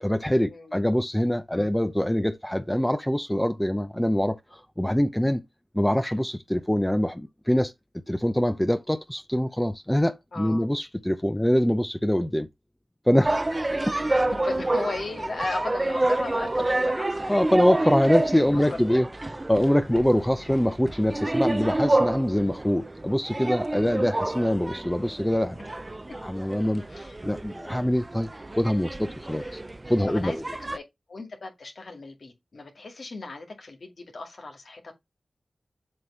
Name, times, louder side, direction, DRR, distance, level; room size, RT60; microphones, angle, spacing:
voice 1, 0.0-5.4 5.7-7.7 8.1-12.5 13.1-13.9 17.3-19.1 19.5-25.6 26.2-26.8 27.2-28.3 28.6-29.6 29.9-30.4, equal, 10° left, 0.7 m, -24 dB
voice 2, 10.3-10.7 13.9-17.3 18.7-19.0 23.7-23.9 26.9-27.2 29.3-29.6 30.1-30.8 31.1-34.9, left 3 dB, 75° left, 2.1 m, -37 dB
sound 1, 13.2-30.8, right 2 dB, 30° right, 0.6 m, -29 dB
7.6 x 3.0 x 5.5 m
cardioid pair, 55°, 0 cm